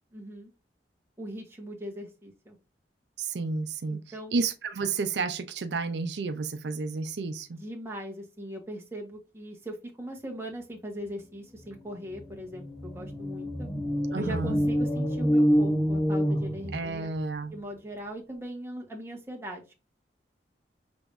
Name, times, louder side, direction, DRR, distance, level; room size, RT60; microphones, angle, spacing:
voice 1, 0.1-0.5 1.2-2.6 3.9-4.3 7.5-13.7 14.2-17.1 17.5-19.7, equal, 15° right, 1.3 m, -40 dB
voice 2, 3.2-7.6 14.1-14.6 16.7-17.6, right 4 dB, 80° right, 0.5 m, -31 dB
sound 1, 11.8-11.9 12.1-17.2, equal, 25° left, 1.2 m, -27 dB
5.9 x 3.4 x 2.6 m
head